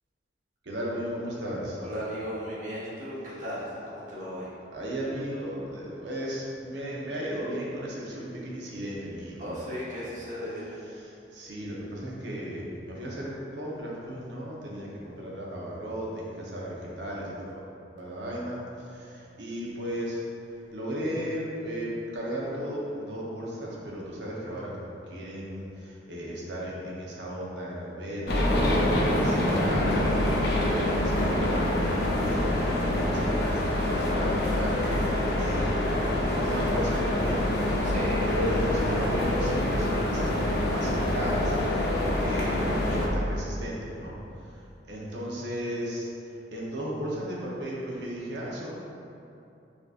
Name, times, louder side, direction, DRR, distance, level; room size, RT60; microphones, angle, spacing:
voice 1, 0.6-1.8 4.7-9.6 10.9-17.6 18.0-20.3 20.7-35.8 36.3-37.5 38.2-44.6 44.9-48.7, equal, 80° right, -5 dB, 0.9 m, -35 dB
voice 2, 1.8-4.5 9.4-10.8 37.8-38.3, equal, 45° right, -9 dB, 1.1 m, -36 dB
sound 1, 28.3-43.1, left 1 dB, 65° left, 0.6 m, -26 dB
5.9 x 2.7 x 2.4 m, 2.7 s
head